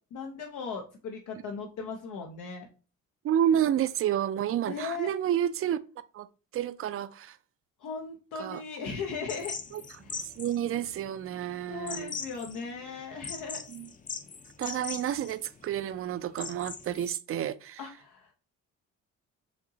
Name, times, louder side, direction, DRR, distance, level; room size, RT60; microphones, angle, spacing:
voice 1, 0.1-2.7 4.7-5.1 7.8-9.5 10.0-10.2 11.7-13.6 17.8-18.3, left 5 dB, 80° left, 0.7 m, -38 dB
voice 2, 3.2-5.8 6.1-6.3 6.5-7.4 8.4-8.6 9.7-9.8 10.4-12.2 13.7-13.9 14.6-17.8, right 10 dB, 50° right, 0.4 m, -30 dB
sound 1, 9.3-17.1, left 5 dB, 25° left, 0.5 m, -41 dB
5.1 x 2.9 x 2.7 m
cardioid pair, 90°, 30 cm